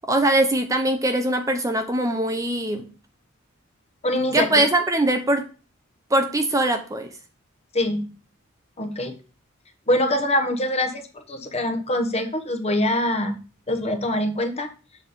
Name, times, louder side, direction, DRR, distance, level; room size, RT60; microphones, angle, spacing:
voice 1, 0.1-2.9 4.3-5.5 6.1-7.1, right 1 dB, 15° right, 7 dB, 0.6 m, -21 dB
voice 2, 4.0-4.5 7.7-8.1 8.8-9.1 9.9-13.4 13.7-14.7, left 1 dB, 30° left, 6 dB, 1.0 m, -24 dB
7.2 x 4.2 x 4.9 m, 0.35 s
head